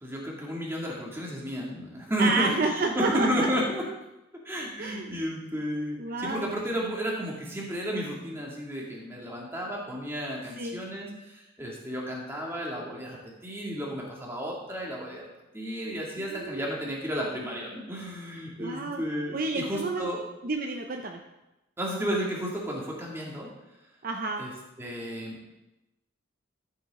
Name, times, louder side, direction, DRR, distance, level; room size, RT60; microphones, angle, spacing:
voice 1, 0.0-3.8 4.4-15.2 15.5-20.2 21.8-23.5 24.4-24.5 24.8-25.4, equal, 10° right, -3 dB, 2.3 m, -32 dB
voice 2, 2.2-3.5 4.8-5.1 5.9-6.5 10.6-10.8 16.2-16.7 18.6-19.0 19.3-20.1 20.4-21.2 24.0-24.4, right 3 dB, 45° right, 3 dB, 0.6 m, -30 dB
14.0 x 7.8 x 3.7 m, 0.99 s
head